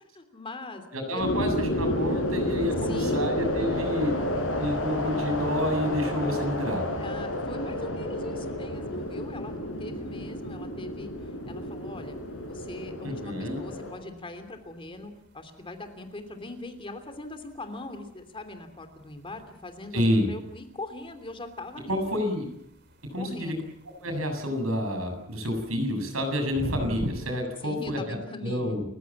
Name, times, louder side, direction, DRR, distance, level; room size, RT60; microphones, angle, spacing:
voice 1, 0.1-1.3 2.8-3.3 7.0-11.1 11.5-12.2 12.4-20.0 20.3-22.3 23.2-23.7 27.6-28.8, left 2 dB, 25° left, 8 dB, 3.0 m, -41 dB
voice 2, 0.9-4.1 4.6-6.8 13.0-13.6 19.9-20.3 21.9-22.5 23.1-23.5 24.0-28.8, left 1 dB, 85° right, 5 dB, 7.5 m, -29 dB
sound 1, 1.2-13.9, left 1 dB, 65° left, 6.9 m, -30 dB
sound 2, 8.7-27.3, equal, 55° right, 3.4 m, -45 dB
29.5 x 15.5 x 8.6 m, 0.81 s
head